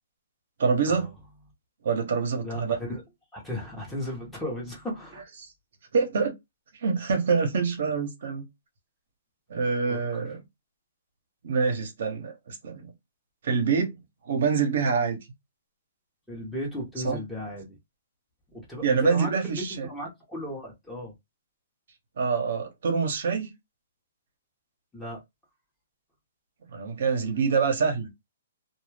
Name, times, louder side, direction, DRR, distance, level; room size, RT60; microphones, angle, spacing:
voice 1, 0.6-1.1 1.8-2.8 5.9-6.3 6.8-8.5 9.5-10.4 11.4-12.9 13.4-14.0 14.3-15.2 17.0-17.2 18.8-19.9 22.2-23.5 26.7-28.1, right 5 dB, 65° right, 0.9 m, -25 dB
voice 2, 2.4-3.0 3.3-5.2 9.9-10.3 16.3-17.8 18.5-21.1 24.9-25.2, left 1 dB, 5° left, 0.9 m, -36 dB
2.3 x 2.0 x 3.2 m
hypercardioid pair, 150°, 0 cm